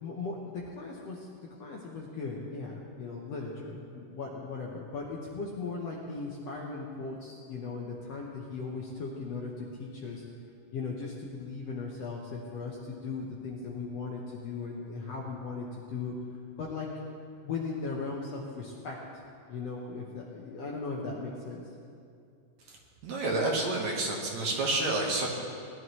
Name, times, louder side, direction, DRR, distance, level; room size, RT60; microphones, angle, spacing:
voice 1, 0.0-10.2 10.7-16.1 16.5-16.9 17.4-19.0 19.5-21.6, left 4 dB, 65° left, -2 dB, 1.7 m, -38 dB
voice 2, 23.0-25.3, right 2 dB, 60° right, -1 dB, 2.4 m, -29 dB
18.5 x 12.0 x 3.1 m, 2.4 s
omnidirectional pair, 4.0 m